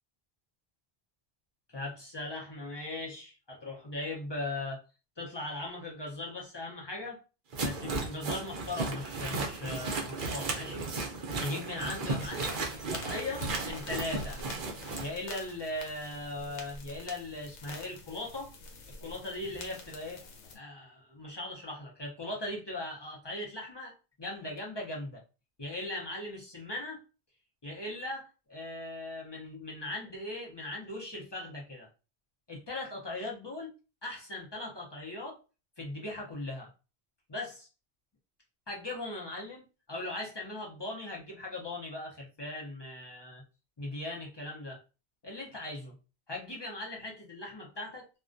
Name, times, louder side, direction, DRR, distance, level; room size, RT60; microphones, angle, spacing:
voice 1, 1.7-4.8 5.2-7.2 7.6-10.9 11.4-14.4 15.0-18.5 19.0-20.2 20.5-25.2 25.6-27.0 27.6-31.9 32.5-33.7 34.0-35.4 35.8-36.7 37.3-37.7 38.7-39.6 39.9-43.4 43.8-44.8 45.2-45.9 46.3-48.1, left 2 dB, 30° left, 0.5 m, -39 dB
sound 1, 7.5-15.1, right 3 dB, 55° right, 0.7 m, -35 dB
sound 2, 12.2-20.6, left 3 dB, 85° left, 0.9 m, -47 dB
2.3 x 2.2 x 2.5 m
omnidirectional pair, 1.1 m